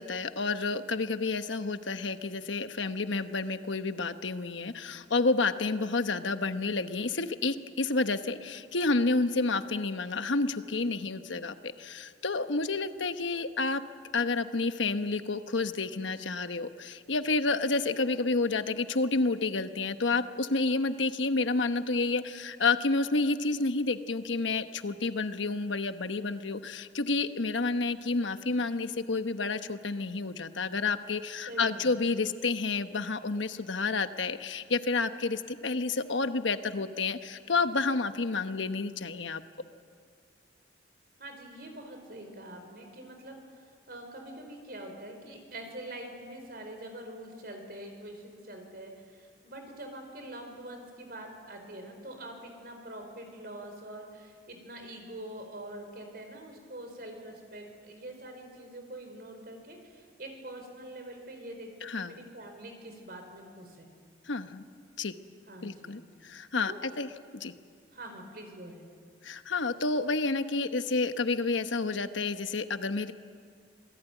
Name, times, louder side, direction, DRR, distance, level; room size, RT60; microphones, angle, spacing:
voice 1, 0.0-13.8 14.1-39.4 61.8-62.1 64.3-64.6 65.0-65.1 65.6-67.1 67.3-67.5 69.2-73.1, left 3 dB, 85° left, 9 dB, 1.1 m, -30 dB
voice 2, 31.5-31.9 41.2-63.9 65.5-66.0 66.6-66.8 67.9-68.8, right 1 dB, 55° right, 4 dB, 4.6 m, -44 dB
27.0 x 18.5 x 9.2 m, 2.1 s
head